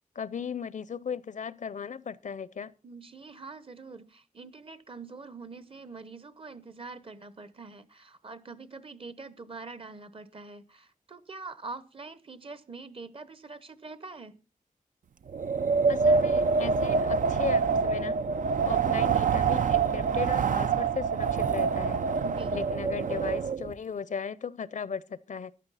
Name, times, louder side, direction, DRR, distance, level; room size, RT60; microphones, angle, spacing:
voice 1, 0.1-2.7 15.9-18.2 18.6-22.1 22.5-25.5, left 6 dB, 65° left, 0.6 m, -36 dB
voice 2, 2.8-14.4 22.2-22.6, right 4 dB, 40° right, 1.0 m, -44 dB
Wind, 15.3-23.7, right 5 dB, 75° right, 0.5 m, -26 dB
14.5 x 11.0 x 4.1 m
wide cardioid pair, 110°, 14 cm